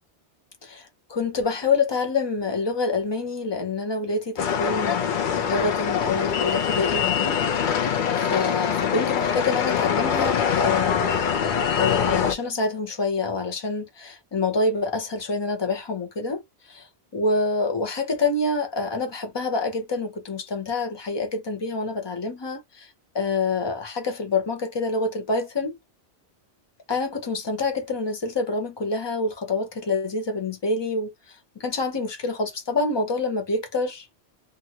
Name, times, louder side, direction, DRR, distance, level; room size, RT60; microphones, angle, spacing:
voice 1, 0.6-7.4 8.1-11.2 11.7-16.4 16.7-16.9 17.1-22.9 23.1-25.8 26.9-31.1 31.6-34.1, left 3 dB, 25° left, 0.8 m, -26 dB
sound 1, 4.4-12.3, left 7 dB, 60° left, 0.6 m, -24 dB
2.7 x 2.5 x 2.8 m
omnidirectional pair, 1.1 m